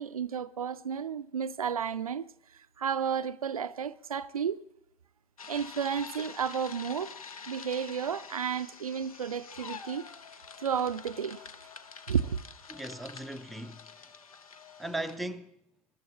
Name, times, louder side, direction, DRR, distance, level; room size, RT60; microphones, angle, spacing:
voice 1, 0.0-2.2 2.8-4.6 5.5-7.1 7.5-10.1 10.6-11.5 12.1-12.4, right 7 dB, 85° right, 0.4 m, -32 dB
sound 1, 5.4-15.2, left 6 dB, 85° left, 0.7 m, -47 dB
voice 2, 12.7-13.9 14.8-15.6, right 1 dB, ahead, 0.5 m, -38 dB
21.0 x 12.5 x 3.1 m
figure-of-eight pair, 85°, 18 cm